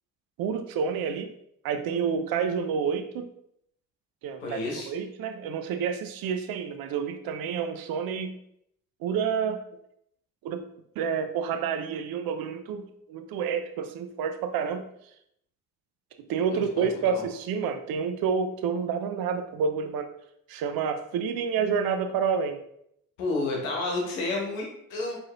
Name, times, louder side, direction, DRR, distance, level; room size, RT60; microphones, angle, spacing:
voice 1, 0.4-1.3 1.6-3.3 4.2-8.4 9.0-9.6 10.4-10.7 11.0-14.9 16.3-20.1 20.5-22.6, right 6 dB, 65° right, 8 dB, 0.6 m, -29 dB
voice 2, 4.4-4.9 16.5-17.2 23.2-25.2, left 2 dB, 85° left, 0 dB, 1.0 m, -31 dB
4.6 x 2.8 x 2.9 m, 0.74 s
hypercardioid pair, 45°, 39 cm